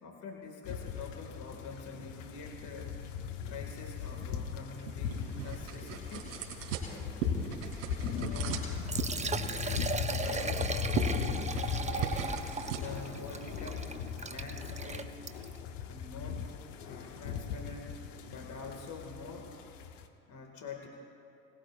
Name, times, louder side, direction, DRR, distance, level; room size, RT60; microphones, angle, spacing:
voice 1, 0.0-3.0 3.4-6.3 8.1-8.7 9.2-12.3 12.7-13.9 14.2-15.2 15.9-16.5 16.8-19.5 20.3-20.9, left 4 dB, 50° left, 1 dB, 2.0 m, -46 dB
sound 1, 0.6-20.0, left 7 dB, 80° left, 1.0 m, -38 dB
sound 2, 4.3-14.5, right 6 dB, 75° right, 3.1 m, -40 dB
Liquid, 8.7-15.6, right 4 dB, 20° right, 0.8 m, -38 dB
27.5 x 19.0 x 2.5 m, 2.7 s
hypercardioid pair, 60°, 37 cm